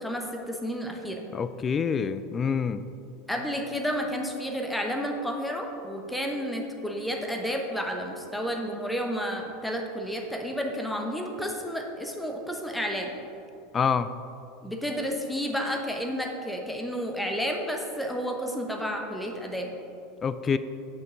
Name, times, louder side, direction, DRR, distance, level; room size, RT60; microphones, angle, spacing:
voice 1, 0.0-1.2 3.3-13.1 14.6-19.7, equal, 5° left, 2 dB, 0.9 m, -31 dB
voice 2, 1.3-2.8 13.7-14.1 20.2-20.6, left 6 dB, 25° left, 13 dB, 0.3 m, -26 dB
8.8 x 5.8 x 3.8 m, 2.8 s
figure-of-eight pair, 80°, 0 cm